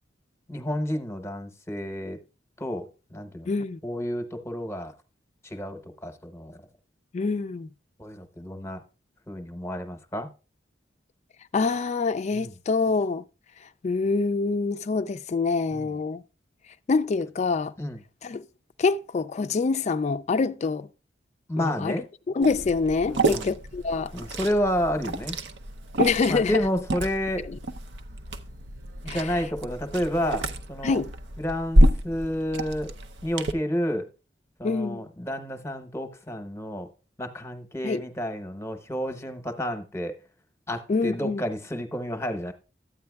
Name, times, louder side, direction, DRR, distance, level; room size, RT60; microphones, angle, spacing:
voice 1, 0.5-2.2 2.6-3.5 3.8-4.9 5.4-6.6 8.0-8.8 9.3-10.3 12.3-12.5 15.7-15.9 17.8-18.0 21.5-22.1 23.1-23.5 24.1-25.4 26.3-27.5 29.0-31.0 31.4-32.9 33.2-34.1 34.6-36.9 37.2-40.2 40.7-42.5, equal, 15° left, 0.9 m, -30 dB
voice 2, 3.5-3.8 7.1-7.7 11.5-13.2 13.8-16.2 16.9-17.7 18.2-18.4 18.8-20.9 21.6-22.0 22.3-24.1 26.0-26.6 27.5-27.6 29.1-29.4 30.8-31.1 34.6-35.1 37.8-38.0 40.9-41.4, left 4 dB, 40° left, 0.3 m, -25 dB
Liquid, 22.4-33.5, right 1 dB, 80° right, 0.7 m, -28 dB
13.0 x 8.6 x 2.3 m
head